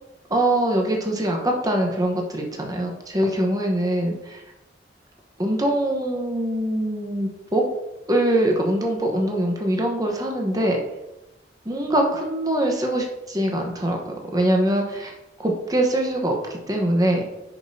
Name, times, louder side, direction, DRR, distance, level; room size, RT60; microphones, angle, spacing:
voice 1, 0.3-4.4 5.4-7.6 8.1-10.8 11.6-15.1 15.4-17.3, right 1 dB, 20° right, 1 dB, 1.0 m, -23 dB
10.5 x 5.2 x 2.7 m, 0.97 s
head